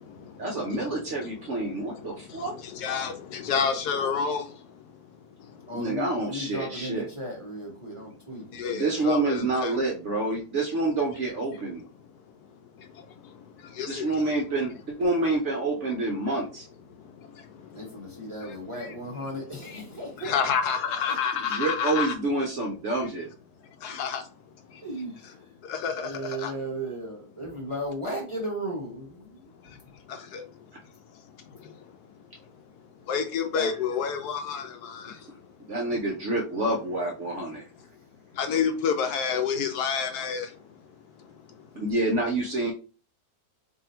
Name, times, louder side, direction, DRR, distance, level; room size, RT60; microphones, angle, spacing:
voice 1, 0.4-2.5 5.7-7.1 8.7-11.8 13.9-16.6 21.4-23.3 33.5-33.7 35.7-37.6 41.8-42.7, right 2 dB, 60° right, 0 dB, 0.8 m, -28 dB
voice 2, 2.8-4.4 8.6-9.7 13.8-13.9 20.2-22.1 23.8-24.2 25.7-26.1 26.4-26.5 33.1-34.7 38.4-40.5, left 6 dB, 75° left, 7 dB, 1.0 m, -28 dB
voice 3, 5.7-8.4 17.7-20.5 20.8-21.1 24.8-25.4 25.9-29.4, right 1 dB, 25° right, -3 dB, 0.7 m, -35 dB
2.7 x 2.6 x 4.2 m, 0.35 s
omnidirectional pair, 1.8 m